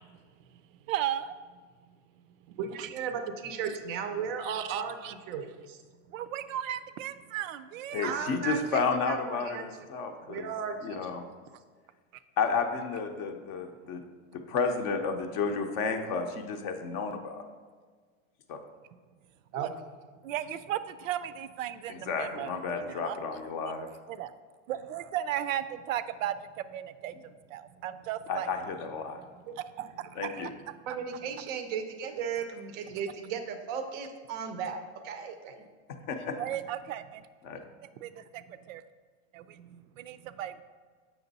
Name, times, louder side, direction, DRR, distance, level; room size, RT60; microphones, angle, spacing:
voice 1, 0.9-1.4 2.5-2.9 3.7-3.8 4.4-5.1 6.1-8.2 19.6-19.7 20.2-23.2 24.1-24.3 24.7-27.1 27.5-28.5 29.6-30.7 36.4-37.3 38.0-38.8 39.3-40.6, right 11 dB, 90° right, 13 dB, 0.6 m, -36 dB
voice 2, 2.6-5.8 8.0-9.7 10.2-11.1 19.5-19.7 29.5-29.6 30.9-35.6, right 6 dB, 25° right, 7 dB, 0.5 m, -36 dB
voice 3, 7.9-10.5 10.8-11.2 12.4-14.0 14.3-17.4 18.5-18.6 21.9-23.9 28.3-29.2 30.2-30.5 36.1-36.4 37.4-37.6, left 5 dB, 35° left, 6 dB, 0.5 m, -32 dB
7.1 x 6.0 x 4.0 m, 1.6 s
supercardioid pair, 160°, 38 cm